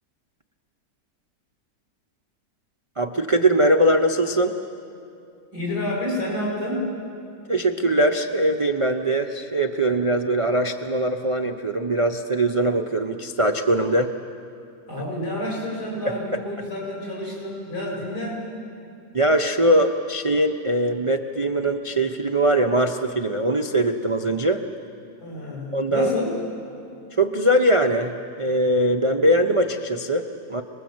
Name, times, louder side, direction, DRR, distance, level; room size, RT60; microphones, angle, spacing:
voice 1, 3.0-4.6 7.5-14.1 19.1-24.6 25.7-26.1 27.2-30.6, right 1 dB, 40° right, 4 dB, 0.4 m, -21 dB
voice 2, 5.5-6.9 14.9-18.4 25.2-26.3, left 1 dB, 70° left, -4 dB, 8.2 m, -29 dB
26.5 x 20.5 x 7.9 m, 2.5 s
omnidirectional pair, 1.8 m